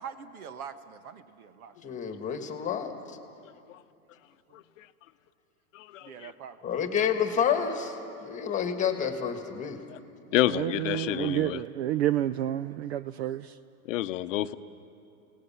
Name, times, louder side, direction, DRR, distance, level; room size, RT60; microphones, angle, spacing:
voice 1, 0.0-2.0 4.5-4.6 6.0-6.8, right 7 dB, 80° right, 1.4 m, -44 dB
voice 2, 1.8-3.2 6.6-9.8, left 7 dB, 15° left, 1.5 m, -29 dB
voice 3, 5.7-6.1 9.9-10.0 10.3-11.6 13.9-14.6, left 14 dB, 60° left, 0.7 m, -28 dB
voice 4, 10.5-13.5, right 13 dB, 50° right, 0.4 m, -29 dB
29.5 x 18.0 x 5.7 m
hypercardioid pair, 140°, 44 cm